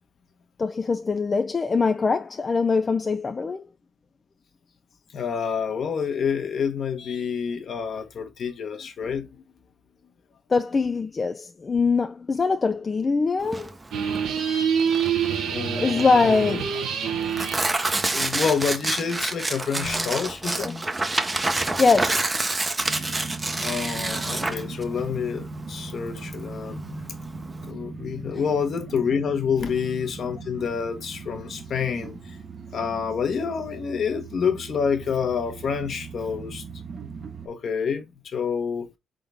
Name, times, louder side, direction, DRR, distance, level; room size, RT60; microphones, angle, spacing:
voice 1, 0.6-3.7 10.5-13.7 15.8-16.9 21.8-22.3 28.3-28.4 29.6-29.7, left 4 dB, 30° left, 0.4 m, -23 dB
voice 2, 5.1-9.3 15.5-16.4 18.1-20.9 23.6-27.1 27.7-32.2 32.7-36.6 37.4-38.9, left 6 dB, 55° left, 1.1 m, -28 dB
Tearing, 13.4-27.7, right 2 dB, 20° right, 0.7 m, -28 dB
sound 1, 13.9-17.7, right 7 dB, 75° right, 0.9 m, -26 dB
sound 2, 22.8-37.5, right 3 dB, 45° right, 0.9 m, -39 dB
4.0 x 3.8 x 3.4 m
cardioid pair, 90°, 0 cm